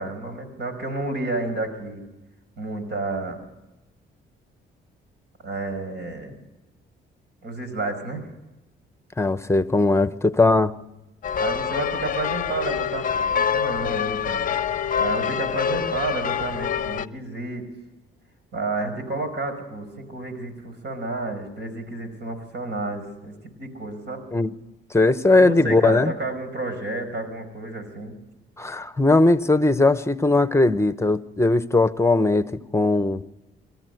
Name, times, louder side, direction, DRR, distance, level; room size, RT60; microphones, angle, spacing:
voice 1, 0.0-2.0 2.6-3.4 5.4-6.4 7.4-8.2 11.3-14.5 15.0-17.7 18.5-23.3 23.6-24.2 25.4-28.2, right 2 dB, 60° right, 5.4 m, -30 dB
voice 2, 9.2-10.7 24.3-24.5 24.9-26.1 28.6-33.2, left 2 dB, 15° left, 1.0 m, -19 dB
sound 1, 11.2-17.1, left 8 dB, 45° left, 0.7 m, -26 dB
26.5 x 14.5 x 8.0 m
cardioid pair, 90°, 20 cm